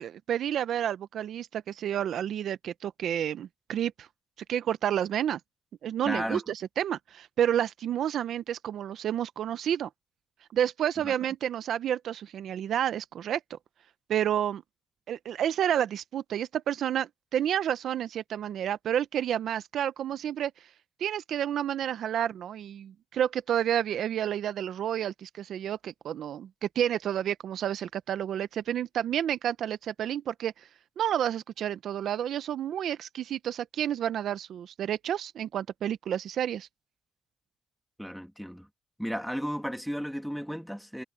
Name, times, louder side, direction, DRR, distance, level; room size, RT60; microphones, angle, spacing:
voice 1, 0.0-4.1 4.5-5.4 5.8-9.9 10.5-13.6 14.1-14.6 15.1-20.5 21.0-30.5 31.0-36.7, right 10 dB, 70° right, 0.8 m, -30 dB
voice 2, 6.0-6.4 11.0-11.1 38.0-38.7 39.0-41.0, equal, ahead, 1.9 m, -34 dB
cardioid pair, 90°, 0 cm